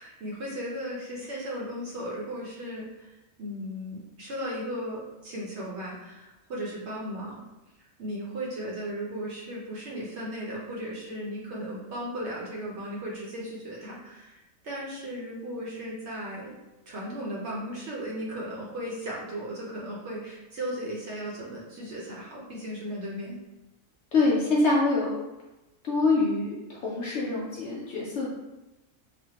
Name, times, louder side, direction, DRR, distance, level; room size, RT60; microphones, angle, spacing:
voice 1, 0.0-7.4 8.0-16.6 16.9-23.4, equal, 60° right, -5 dB, 0.8 m, -36 dB
voice 2, 24.1-25.1 25.8-28.3, left 3 dB, 65° left, -4 dB, 0.7 m, -25 dB
3.4 x 2.1 x 2.8 m, 1.0 s
omnidirectional pair, 1.5 m